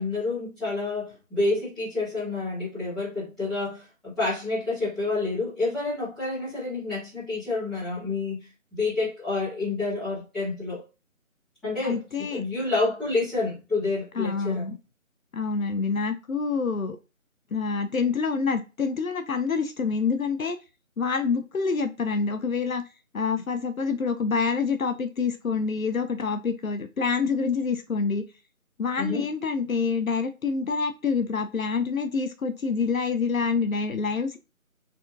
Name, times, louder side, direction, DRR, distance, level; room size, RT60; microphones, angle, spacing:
voice 1, 0.0-10.8 11.6-14.7 29.0-29.3, left 3 dB, ahead, 1.6 m, -29 dB
voice 2, 11.8-12.4 14.2-14.8 15.3-17.0 17.5-20.6 21.0-22.8 23.1-28.2 28.8-34.4, left 5 dB, 75° left, 0.8 m, -27 dB
4.3 x 3.6 x 2.6 m
figure-of-eight pair, 165°, 42 cm